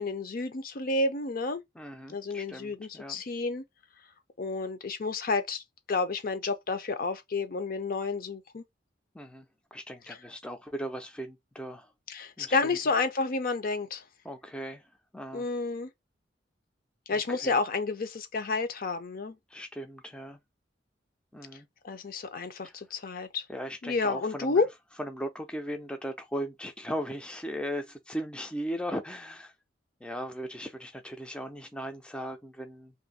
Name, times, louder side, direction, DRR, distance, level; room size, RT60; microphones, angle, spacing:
voice 1, 0.0-1.6 2.1-3.6 4.4-5.6 5.9-8.6 10.1-10.2 12.1-14.0 15.3-15.9 17.1-19.4 21.8-23.4 23.8-24.7, left 3 dB, 55° left, 0.6 m, -30 dB
voice 2, 1.8-3.2 9.1-9.5 9.7-11.9 12.4-12.8 14.2-14.8 15.1-15.4 17.1-17.6 19.5-20.4 21.3-21.7 22.6-22.7 23.5-24.6 25.0-29.5 30.0-32.9, equal, 5° left, 0.4 m, -38 dB
2.6 x 2.6 x 4.0 m
head